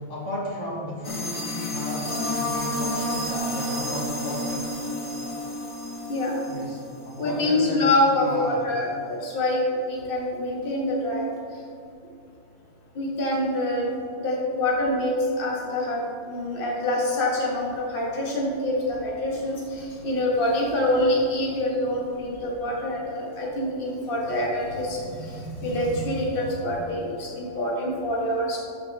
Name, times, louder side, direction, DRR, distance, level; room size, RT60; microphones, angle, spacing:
voice 1, 0.0-4.7 6.5-7.9 8.2-8.6, equal, 70° left, -4 dB, 2.1 m, -34 dB
sound 1, 1.0-7.3, left 1 dB, 25° left, 1.3 m, -30 dB
voice 2, 7.2-11.3 12.9-13.9 14.2-28.6, left 1 dB, 45° left, -4 dB, 1.7 m, -26 dB
12.5 x 6.7 x 3.5 m, 2.5 s
omnidirectional pair, 1.3 m